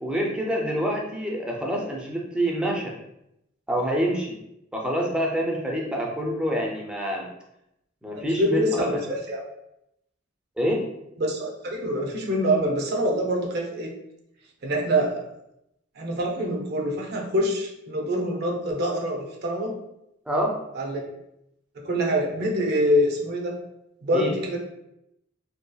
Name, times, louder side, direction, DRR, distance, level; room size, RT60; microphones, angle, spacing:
voice 1, 0.0-2.9 3.7-4.4 4.7-7.3 8.0-8.7 10.6-10.9 20.3-20.6 24.1-24.3, equal, 5° right, -1 dB, 0.4 m, -26 dB
voice 2, 8.1-9.4 11.2-13.9 14.6-15.3 16.0-19.8 20.8-21.1 21.8-23.6 24.0-24.6, equal, 55° right, 0 dB, 0.5 m, -25 dB
2.7 x 2.3 x 2.2 m, 0.81 s
head